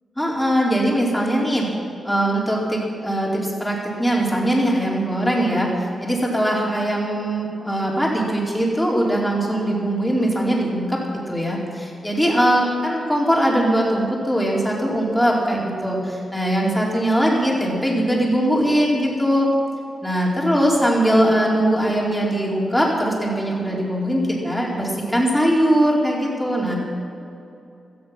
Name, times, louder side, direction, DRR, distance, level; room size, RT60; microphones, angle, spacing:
voice 1, 0.2-1.7 2.0-19.5 20.0-26.8, equal, 5° left, -3 dB, 4.6 m, -21 dB
17.5 x 13.5 x 6.0 m, 2.7 s
cardioid pair, 90°, 0 cm